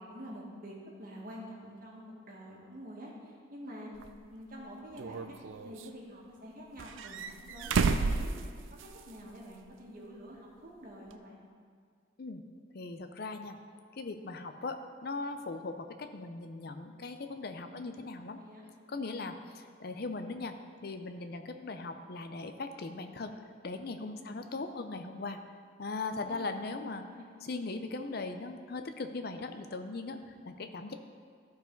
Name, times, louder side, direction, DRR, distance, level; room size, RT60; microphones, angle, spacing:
voice 1, 0.0-4.0 4.3-5.4 5.6-8.3 8.8-11.4 17.6-18.0 18.3-18.7 24.1-24.9 26.2-27.2 30.2-30.4, equal, 45° right, -3 dB, 1.7 m, -48 dB
sound 1, 4.0-4.1 5.0-5.9 6.8-9.1 9.4-9.5 11.1-11.2, right 4 dB, 70° right, 0.4 m, -31 dB
voice 2, 12.7-13.6 14.0-18.4 18.9-20.6 20.8-23.3 23.6-25.4 25.8-27.0 27.4-30.2 30.5-30.9, left 3 dB, 50° left, 8 dB, 0.5 m, -39 dB
13.0 x 4.7 x 4.5 m, 2.1 s
head